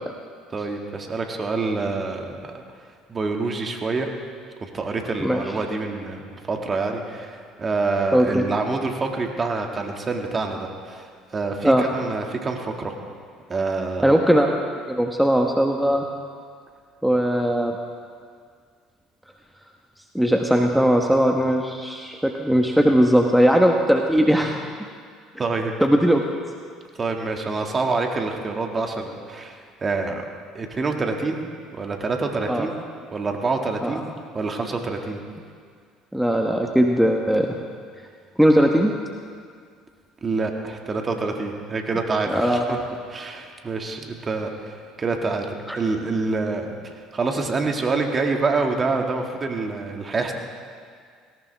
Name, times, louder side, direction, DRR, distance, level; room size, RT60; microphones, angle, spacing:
voice 1, 0.5-2.5 3.1-4.1 4.6-11.1 11.3-12.9 13.5-14.2 25.4-25.7 27.0-30.3 30.5-31.4 31.7-32.7 33.1-34.0 34.3-35.2 40.2-42.8 43.1-50.3, right 3 dB, 30° right, 3 dB, 2.1 m, -26 dB
voice 2, 8.1-8.4 11.6-11.9 14.0-14.6 14.9-16.1 17.0-17.7 20.1-24.6 25.8-26.2 32.5-32.7 33.8-33.9 36.1-37.6 38.4-38.9 42.3-42.8 45.7-45.8, equal, 5° right, 2 dB, 1.2 m, -19 dB
18.0 x 17.5 x 3.5 m, 2.1 s
hypercardioid pair, 65°, 0 cm